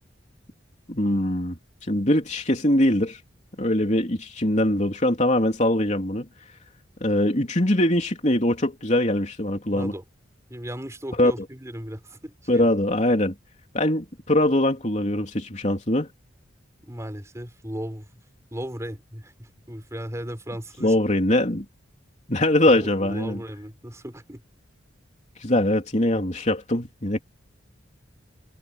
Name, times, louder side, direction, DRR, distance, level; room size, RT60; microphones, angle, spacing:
voice 1, 0.9-1.6 1.9-3.2 3.6-6.3 7.0-9.9 11.2-11.3 12.5-13.3 13.7-16.1 20.8-21.6 22.3-23.4 25.4-27.2, left 1 dB, 35° left, 3.5 m, -22 dB
voice 2, 9.7-10.0 10.5-12.7 16.8-18.1 18.5-20.9 22.6-24.4, equal, 15° right, 5.1 m, -36 dB
head